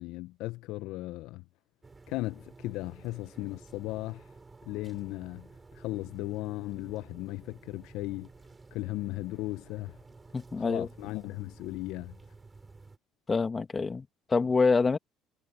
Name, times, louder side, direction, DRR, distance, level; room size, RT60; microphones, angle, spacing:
voice 1, 0.0-1.4 2.1-4.2 4.6-5.5 5.7-8.3 8.7-10.0 10.6-12.1, left 19 dB, 70° left, 1.1 m, -36 dB
sound 1, 1.8-13.0, right 3 dB, 25° right, 5.3 m, -53 dB
voice 2, 10.3-10.9 13.3-15.0, left 4 dB, 30° left, 2.4 m, -26 dB
hypercardioid pair, 55°, 0 cm